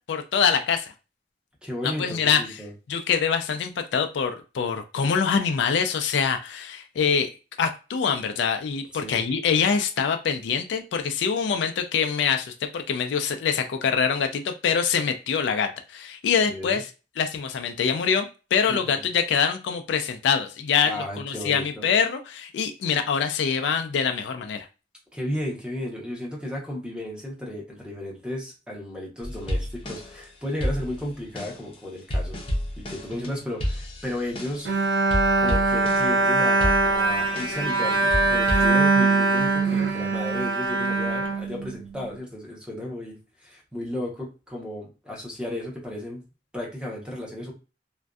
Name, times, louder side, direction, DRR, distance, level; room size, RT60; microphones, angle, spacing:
voice 1, 0.1-0.9 1.8-2.4 2.9-7.3 7.6-16.9 17.2-24.7, left 6 dB, 75° left, 7 dB, 0.3 m, -24 dB
voice 2, 1.6-2.7 8.9-9.2 16.5-16.8 18.7-19.0 20.8-21.9 25.1-32.4 32.8-34.7 35.4-46.2 46.5-47.5, left 1 dB, 5° right, -2 dB, 0.7 m, -34 dB
sound 1, 29.2-30.2 30.6-34.8 35.1-36.2 36.6-37.8 38.1-38.7, equal, 30° left, 0.6 m, -31 dB
Bowed string instrument, 34.7-42.0, right 3 dB, 85° right, 0.5 m, -22 dB
2.5 x 2.1 x 2.3 m, 0.32 s
head